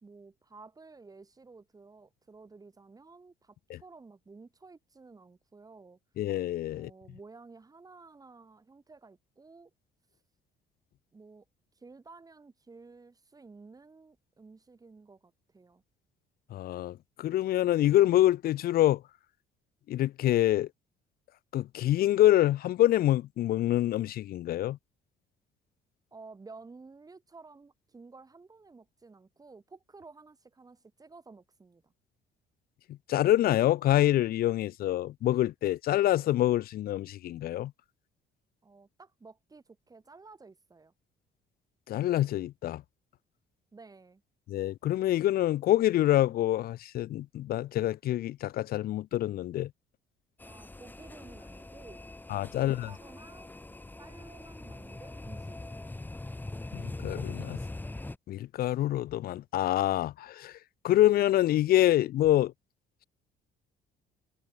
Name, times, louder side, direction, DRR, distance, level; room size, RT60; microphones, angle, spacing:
voice 1, 0.0-6.0 6.7-9.7 11.1-11.4 11.8-15.8 26.1-31.8 38.6-40.9 43.7-44.2 50.4-52.0 52.5-53.5 54.0-55.9, right 4 dB, 20° right, 4.4 m, -53 dB
voice 2, 6.2-6.9 16.5-19.0 19.9-20.7 21.5-24.8 33.1-37.7 41.9-42.8 44.5-49.7 52.3-52.9 56.7-57.6 58.3-60.5 60.8-62.5, left 13 dB, 60° left, 0.9 m, -26 dB
sound 1, 50.4-58.2, left 2 dB, 10° left, 3.3 m, -42 dB
cardioid pair, 110°, 17 cm